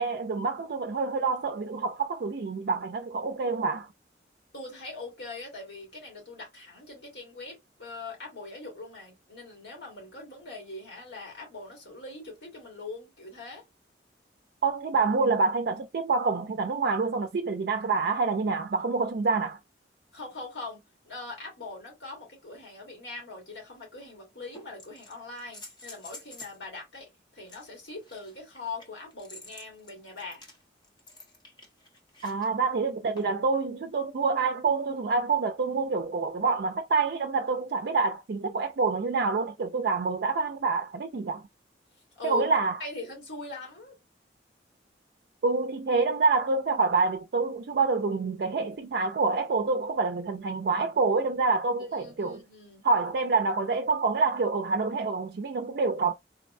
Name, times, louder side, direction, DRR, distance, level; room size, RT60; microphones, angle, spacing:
voice 1, 0.0-3.9 14.6-19.6 32.2-41.4 42.2-42.8 45.4-52.4 52.8-56.1, right 4 dB, 60° right, 0.4 m, -27 dB
voice 2, 4.5-13.6 20.1-20.8 21.0-30.4 42.1-42.5 42.8-43.9 52.0-52.8, left 3 dB, 75° left, 2.1 m, -41 dB
sound 1, 23.5-23.6 24.5-26.6 27.5-32.5 33.2-33.5 35.1-35.2, left 2 dB, 25° left, 0.8 m, -49 dB
3.9 x 2.1 x 2.5 m
head